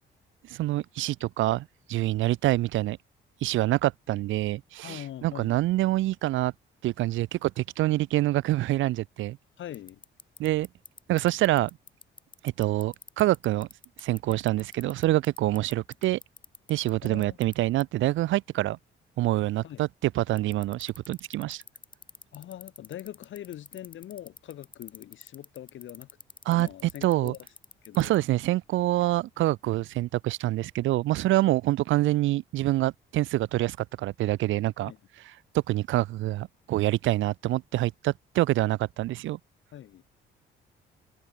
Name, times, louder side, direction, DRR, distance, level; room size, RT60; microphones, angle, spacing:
voice 1, 0.5-3.0 3.4-6.5 6.8-9.4 10.4-10.7 11.1-11.7 12.4-13.7 14.0-16.2 16.7-18.8 19.2-21.6 26.5-27.3 27.9-34.9 35.2-39.4, right 16 dB, 75° right, 0.5 m, -26 dB
voice 2, 4.8-5.6 9.6-10.0 17.0-17.4 19.6-19.8 22.3-26.1 26.5-27.4 27.8-28.1 34.8-35.0 39.7-40.0, left 12 dB, 75° left, 6.4 m, -42 dB
sound 1, 9.7-17.5 17.8-17.9 20.4-28.1, left 4 dB, 25° left, 1.2 m, -45 dB
cardioid pair, 90°, 20 cm